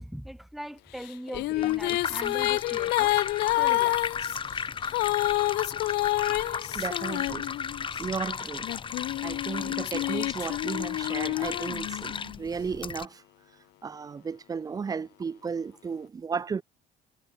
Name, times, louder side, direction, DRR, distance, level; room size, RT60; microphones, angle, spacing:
voice 1, 0.0-3.1 3.6-4.0, equal, ahead, 0.9 m, -40 dB
sound 1, 1.0-8.0 8.6-12.4, left 19 dB, 80° left, 0.7 m, -28 dB
sound 2, 1.3-13.1, left 6 dB, 30° left, 1.0 m, -35 dB
voice 2, 6.7-7.4 8.0-8.7 9.2-13.2 13.8-16.6, right 5 dB, 20° right, 0.4 m, -34 dB
cardioid pair, 110°, 17 cm